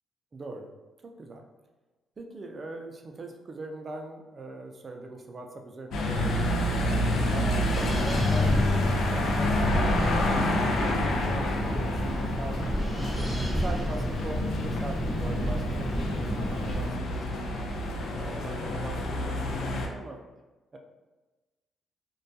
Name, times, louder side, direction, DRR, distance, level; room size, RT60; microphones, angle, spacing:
voice 1, 0.3-0.7 1.0-1.4 2.2-7.5 8.0-17.2 18.1-20.2 20.7-20.8, right 2 dB, 35° right, 3 dB, 0.3 m, -41 dB
sound 1, 5.9-19.9, left 1 dB, 75° left, 0.4 m, -29 dB
Wind, 6.2-16.9, right 1 dB, 5° right, 0.7 m, -31 dB
2.2 x 2.2 x 2.6 m, 1.2 s
cardioid pair, 90°, 0 cm